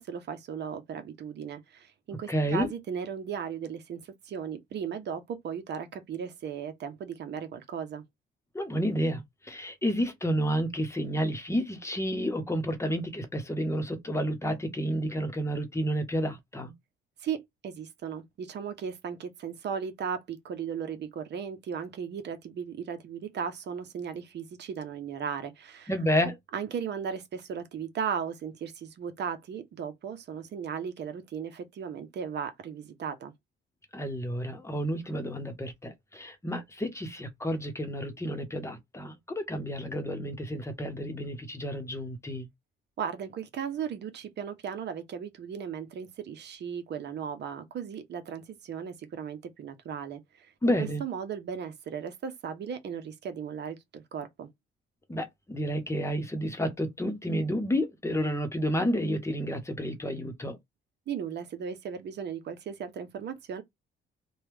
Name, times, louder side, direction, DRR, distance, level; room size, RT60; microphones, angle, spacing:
voice 1, 0.0-8.0 17.2-25.9 26.5-33.3 43.0-54.5 61.1-63.6, right 7 dB, 60° right, 0.8 m, -36 dB
voice 2, 2.3-2.7 8.5-16.7 25.9-26.4 33.9-42.5 50.6-51.0 55.1-60.6, equal, 15° left, 0.9 m, -30 dB
2.9 x 2.3 x 3.3 m
cardioid pair, 90°, 20 cm